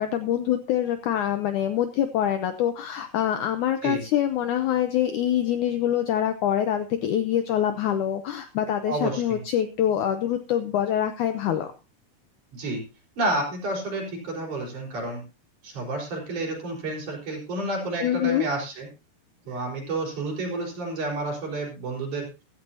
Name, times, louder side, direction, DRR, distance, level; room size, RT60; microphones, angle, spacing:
voice 1, 0.0-11.7 18.0-18.5, left 10 dB, 80° left, 9 dB, 1.8 m, -25 dB
voice 2, 8.9-9.4 12.5-12.8 13.2-15.2 15.6-18.9 19.5-22.3, right 2 dB, 50° right, -1 dB, 6.0 m, -30 dB
15.5 x 14.0 x 2.8 m, 0.28 s
omnidirectional pair, 4.4 m